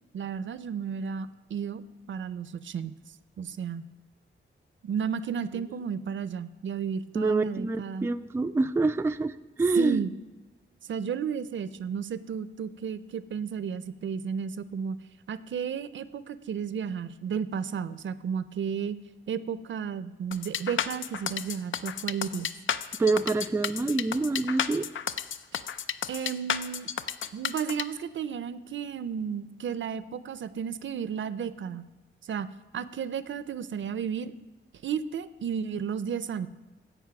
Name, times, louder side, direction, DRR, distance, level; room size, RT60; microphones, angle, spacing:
voice 1, 0.1-1.8 2.1-2.9 3.4-3.8 4.8-8.1 9.8-10.1 10.8-15.0 15.3-19.0 19.3-22.5 26.1-26.9 27.3-31.9 32.2-34.3 34.8-36.5, right 7 dB, 70° right, 15 dB, 0.5 m, -33 dB
voice 2, 7.2-10.0 23.0-24.9, right 3 dB, 15° right, 9 dB, 0.3 m, -26 dB
sound 1, 20.3-27.8, left 8 dB, 75° left, 0.5 m, -32 dB
16.0 x 5.5 x 5.9 m, 1.2 s
wide cardioid pair, 115°, 20 cm